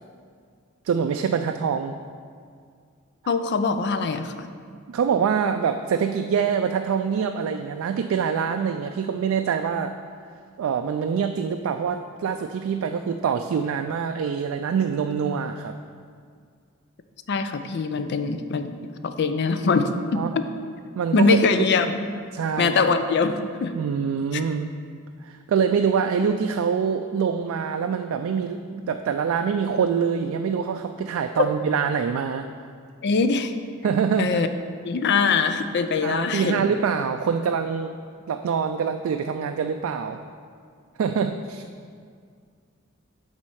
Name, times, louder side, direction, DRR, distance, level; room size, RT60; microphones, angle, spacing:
voice 1, 0.9-1.9 4.9-9.9 10.6-15.7 20.2-20.3 21.0-21.4 22.3-22.8 23.7-24.7 25.2-32.5 33.8-34.4 36.0-37.9 38.3-40.2 41.0-41.6, right 6 dB, 80° right, 6 dB, 0.3 m, -25 dB
voice 2, 3.3-4.4 17.3-18.8 19.0-20.5 21.1-22.1 22.6-23.8 24.3-24.4 33.0-33.5 34.2-34.5 34.8-36.6, left 4 dB, 55° left, 9 dB, 0.4 m, -22 dB
7.4 x 4.1 x 6.3 m, 2.2 s
head